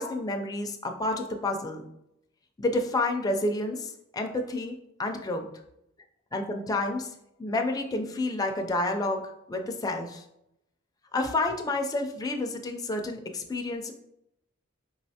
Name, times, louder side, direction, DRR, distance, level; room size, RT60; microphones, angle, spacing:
voice 1, 0.0-1.8 2.6-5.5 6.3-7.1 7.4-10.2 11.1-13.9, left 2 dB, 20° left, 4 dB, 0.4 m, -30 dB
4.9 x 3.1 x 2.8 m, 0.82 s
head